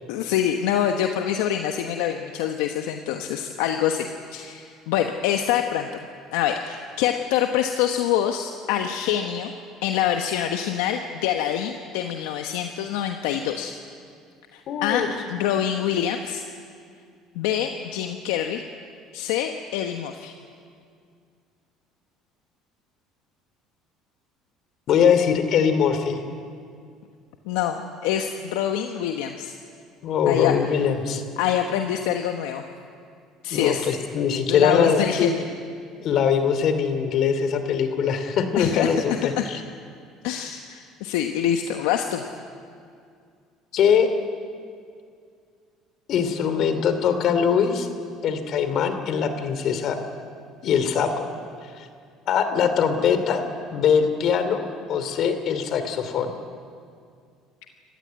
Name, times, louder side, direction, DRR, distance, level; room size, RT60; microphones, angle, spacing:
voice 1, 0.1-5.9 6.3-9.5 9.8-13.7 14.5-16.4 17.3-18.6 19.1-20.3 27.5-29.5 30.3-30.6 31.4-32.6 33.4-33.9 34.5-35.5 38.6-38.9 39.4-39.5 40.2-42.2, left 10 dB, 80° left, 5 dB, 1.1 m, -25 dB
voice 2, 14.7-15.1 24.9-26.2 30.0-31.2 33.5-35.3 36.0-39.6 41.7-41.8 43.7-44.1 46.1-47.9 48.2-50.0 50.6-51.3 51.8-51.9 52.3-53.4 53.7-56.3, left 7 dB, 60° left, 9 dB, 2.8 m, -22 dB
27.5 x 15.0 x 9.5 m, 2.2 s
supercardioid pair, 80°, 0 cm